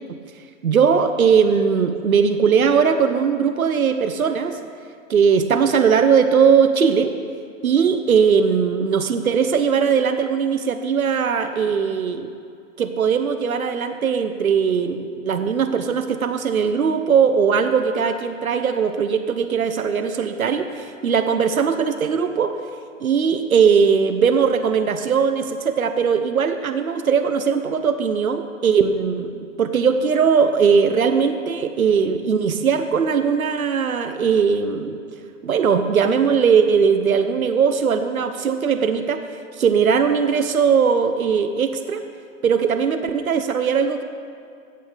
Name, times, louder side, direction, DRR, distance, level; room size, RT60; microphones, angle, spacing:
voice 1, 0.6-4.6 5.1-7.1 7.6-12.3 12.8-22.5 23.0-29.3 29.6-35.0 35.4-39.2 39.6-42.0 42.4-44.0, right 6 dB, 85° right, 8 dB, 0.9 m, -19 dB
15.0 x 7.9 x 5.1 m, 2.3 s
hypercardioid pair, 115°, 41 cm